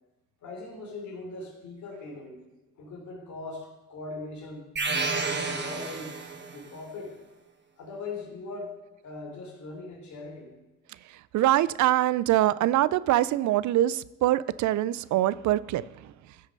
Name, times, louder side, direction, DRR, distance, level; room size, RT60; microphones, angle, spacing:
voice 1, 0.4-2.4 2.8-4.7 5.1-7.2 7.8-8.8 9.0-10.5, left 3 dB, 70° left, 1 dB, 3.3 m, -40 dB
sound 1, 4.8-6.7, right 4 dB, 35° right, 1.4 m, -30 dB
voice 2, 11.1-16.1, right 14 dB, 70° right, 19 dB, 0.5 m, -24 dB
13.5 x 6.4 x 5.3 m, 1.1 s
cardioid pair, 90°, 30 cm